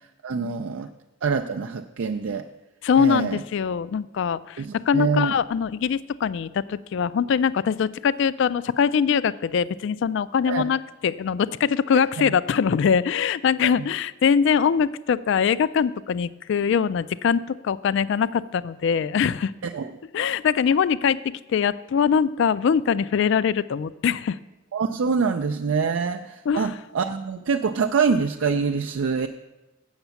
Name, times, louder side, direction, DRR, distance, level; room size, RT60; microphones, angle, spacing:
voice 1, 0.2-0.9 1.2-2.5 3.0-3.4 4.6-5.3 10.5-10.6 13.6-13.7 19.6-19.9 24.7-29.3, right 5 dB, 70° right, 6 dB, 0.4 m, -25 dB
voice 2, 2.8-19.5 20.1-24.4 26.5-26.8, left 7 dB, 60° left, 18 dB, 0.3 m, -22 dB
8.0 x 7.2 x 6.9 m, 1.0 s
head